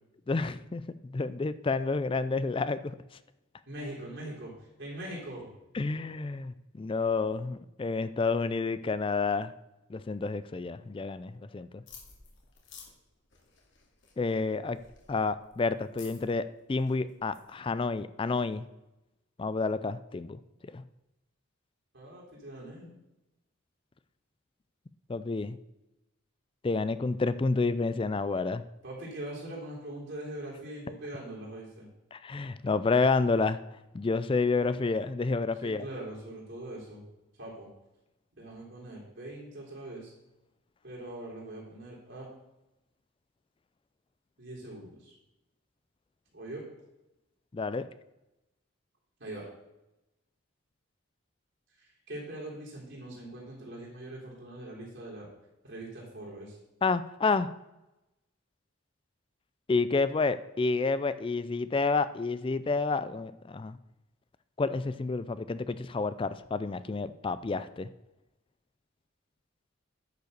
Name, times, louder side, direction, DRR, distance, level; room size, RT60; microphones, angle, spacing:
voice 1, 0.3-0.8 1.1-2.9 5.7-9.5 9.9-11.8 14.2-14.8 15.1-18.6 19.4-20.4 20.7-20.8 25.1-25.6 26.6-28.6 32.1-33.6 33.9-35.8 47.5-47.9 56.8-57.5 59.7-63.8 64.6-67.9, left 4 dB, 25° left, 14 dB, 0.3 m, -29 dB
voice 2, 3.7-5.5 21.9-22.9 28.8-31.9 35.6-37.0 37.4-37.7 38.3-40.1 40.8-42.3 44.4-45.1 46.3-46.7 49.2-49.5 51.8-55.3 55.6-56.6, right 1 dB, 60° right, -4 dB, 3.5 m, -42 dB
sound 1, 11.9-17.5, left 6 dB, 60° left, 2.4 m, -54 dB
10.5 x 5.5 x 6.6 m, 0.95 s
head